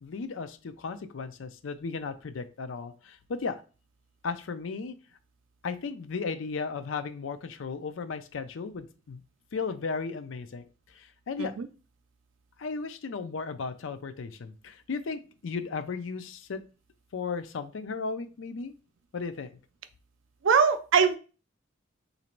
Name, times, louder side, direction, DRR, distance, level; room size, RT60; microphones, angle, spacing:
voice 1, 0.0-3.6 4.2-4.9 5.6-9.2 9.5-10.6 10.9-11.5 12.6-16.6 17.1-18.7 19.1-19.6, left 4 dB, 80° left, 11 dB, 0.5 m, -35 dB
voice 2, 20.4-21.2, right 6 dB, 80° right, 10 dB, 0.5 m, -22 dB
3.0 x 2.7 x 4.4 m, 0.34 s
head